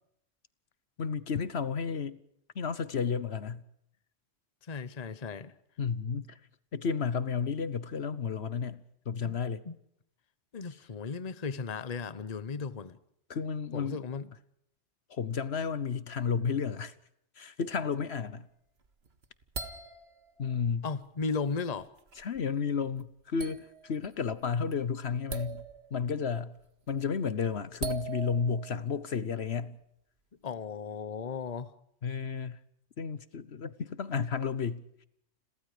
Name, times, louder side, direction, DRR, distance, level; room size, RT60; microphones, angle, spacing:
voice 1, 1.0-2.2 2.5-3.6 5.8-6.4 6.7-8.8 9.1-9.6 13.3-14.0 15.1-16.9 17.4-18.5 20.4-20.9 22.2-25.6 25.9-26.5 26.9-29.8 32.0-32.6 33.0-34.8, left 6 dB, 65° left, 1.3 m, -32 dB
voice 2, 4.7-5.5 9.2-9.4 9.7-9.8 10.5-13.0 13.7-14.3 20.8-21.9 30.4-31.7, left 5 dB, 35° left, 1.0 m, -35 dB
sound 1, 18.8-20.6 21.2-21.4 21.8-22.4 23.0-23.1 23.4-24.1 24.3-24.7 25.3-26.0 26.6-27.0 27.8-29.1, right 5 dB, 60° right, 2.0 m, -41 dB
30.0 x 22.5 x 5.0 m
omnidirectional pair, 1.2 m